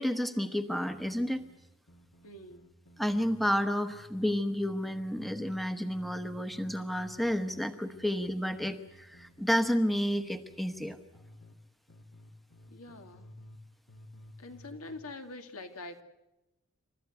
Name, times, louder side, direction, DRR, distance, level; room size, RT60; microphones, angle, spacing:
voice 1, 0.0-1.4 3.0-11.0, equal, ahead, 9 dB, 1.0 m, -31 dB
sound 1, 0.9-3.6 3.9-5.6 5.9-11.6 11.9-13.6 13.9-15.0, left 1 dB, 70° left, 1.9 m, -54 dB
voice 2, 2.2-2.6 12.7-13.3 14.4-16.0, left 2 dB, 85° left, 6 dB, 2.3 m, -45 dB
29.0 x 14.0 x 9.4 m, 0.95 s
head